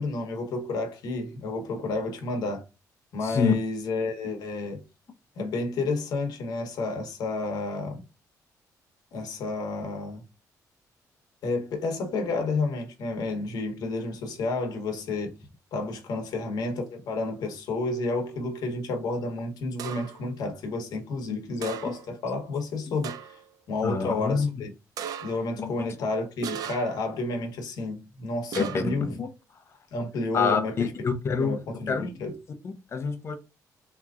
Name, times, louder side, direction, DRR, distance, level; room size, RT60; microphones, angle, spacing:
voice 1, 0.0-2.6 3.1-4.8 5.4-8.0 9.1-10.2 11.4-15.4 15.7-23.4 23.7-24.7 25.2-29.1 29.9-30.9 31.4-32.4, left 3 dB, 75° left, 1.0 m, -31 dB
voice 2, 3.2-3.5 23.8-24.5 25.6-25.9 28.6-29.3 30.3-32.1 32.6-33.4, left 5 dB, 40° left, 0.6 m, -27 dB
sound 1, 19.8-20.3 21.6-22.2 22.5-22.6 23.0-23.5 25.0-25.5 26.4-27.1 28.5-29.0, right 8 dB, 65° right, 0.4 m, -38 dB
3.6 x 2.9 x 2.4 m
cardioid pair, 135°, 7 cm